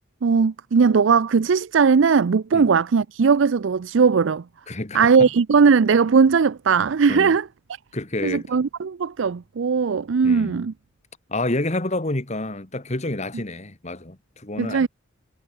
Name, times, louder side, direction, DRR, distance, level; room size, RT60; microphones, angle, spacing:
voice 1, 0.2-4.4 4.9-7.4 8.2-10.7 14.6-14.9, right 5 dB, 65° right, 0.5 m, -18 dB
voice 2, 4.7-5.3 7.1-7.4 7.9-8.6 10.2-10.6 11.3-14.9, left 2 dB, 35° left, 1.8 m, -29 dB
head